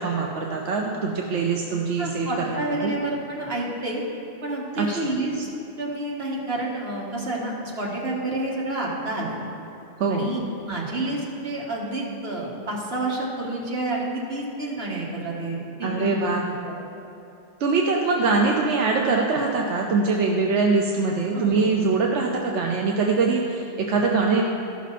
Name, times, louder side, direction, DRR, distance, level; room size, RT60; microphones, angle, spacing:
voice 1, 0.0-2.9 4.8-5.0 10.0-10.3 15.8-16.4 17.6-24.4, right 4 dB, 90° right, 0 dB, 1.1 m, -23 dB
voice 2, 2.0-4.0 4.4-5.5 5.8-9.4 10.1-16.2 16.5-16.8 21.3-21.7, right 2 dB, 65° right, -4 dB, 2.0 m, -29 dB
14.5 x 5.9 x 4.2 m, 2.9 s
omnidirectional pair, 1.1 m